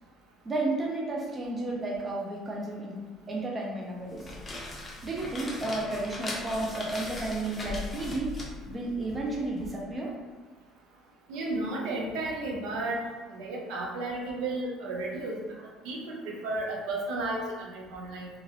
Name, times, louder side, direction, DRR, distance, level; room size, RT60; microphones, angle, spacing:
voice 1, 0.4-3.0 3.3-4.3 5.0-8.4 8.7-10.2, right 2 dB, 25° right, -2 dB, 0.6 m, -32 dB
sound 1, 4.0-9.7, left 2 dB, 25° left, 0.6 m, -39 dB
voice 2, 11.3-13.0 13.3-18.3, right 2 dB, 75° right, -1 dB, 0.6 m, -33 dB
2.9 x 2.4 x 2.8 m, 1.3 s
cardioid pair, 115°, 0 cm